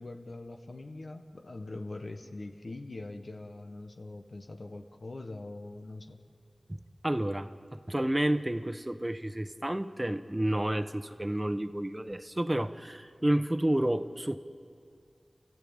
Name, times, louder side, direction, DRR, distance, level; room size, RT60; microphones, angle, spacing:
voice 1, 0.0-6.2, left 2 dB, 70° left, 4 dB, 1.3 m, -43 dB
voice 2, 6.7-14.4, right 1 dB, 20° right, 10 dB, 1.0 m, -30 dB
29.0 x 15.0 x 8.9 m, 2.4 s
wide cardioid pair, 55°, 0 cm